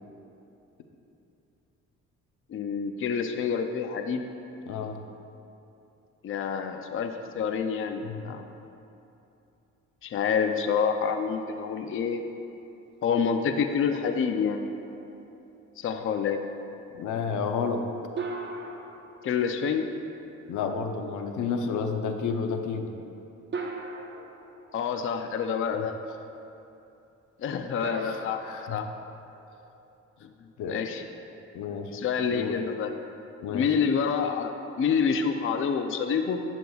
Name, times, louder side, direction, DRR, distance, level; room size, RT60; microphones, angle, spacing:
voice 1, 2.5-4.3 6.2-8.5 10.0-12.2 13.0-14.6 15.8-16.4 19.2-19.9 24.7-25.9 27.4-28.4 28.7-28.9 30.2-31.0 31.9-33.0 33.5-36.4, left 6 dB, 45° left, 6 dB, 0.5 m, -27 dB
voice 2, 4.7-5.0 8.0-8.4 16.9-17.8 20.5-22.9 28.0-28.2 28.4-28.8 30.6-30.8 31.5-31.9 32.3-32.6 33.4-33.7, left 5 dB, 80° left, 5 dB, 0.7 m, -31 dB
sound 1, 13.9-15.4 18.2-20.2 21.8-21.9 23.5-25.4 27.8-29.9, right 3 dB, 40° right, 0.9 m, -40 dB
11.5 x 7.9 x 2.3 m, 2.8 s
cardioid pair, 90°, 30 cm